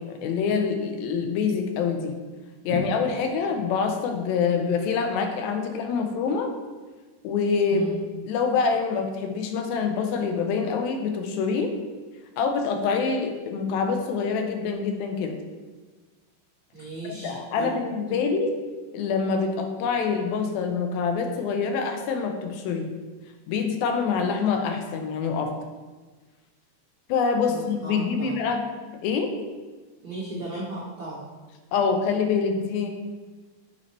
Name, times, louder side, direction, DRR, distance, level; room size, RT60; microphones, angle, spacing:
voice 1, 0.0-2.2 2.7-6.5 7.2-7.9 8.3-11.7 12.4-15.4 17.2-18.5 18.9-22.9 23.5-25.5 27.1-28.6 29.0-29.3 31.7-32.9, left 5 dB, 80° left, 5 dB, 2.4 m, -25 dB
voice 2, 16.7-17.8 27.5-28.4 30.0-31.2, right 2 dB, 35° right, -15 dB, 1.0 m, -36 dB
8.0 x 2.8 x 4.2 m, 1.3 s
omnidirectional pair, 4.3 m